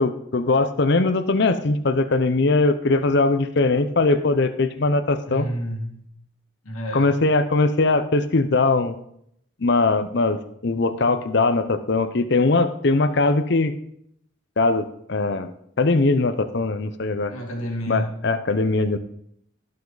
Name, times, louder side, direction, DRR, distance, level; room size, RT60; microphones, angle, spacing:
voice 1, 0.0-5.5 6.9-8.9 9.6-13.7 14.6-15.5 15.8-17.3 17.9-19.0, left 3 dB, 55° left, 11 dB, 0.7 m, -20 dB
voice 2, 5.3-6.1 6.7-7.1 17.3-18.1, equal, 90° left, 1 dB, 2.1 m, -29 dB
16.5 x 5.7 x 3.9 m, 0.70 s
head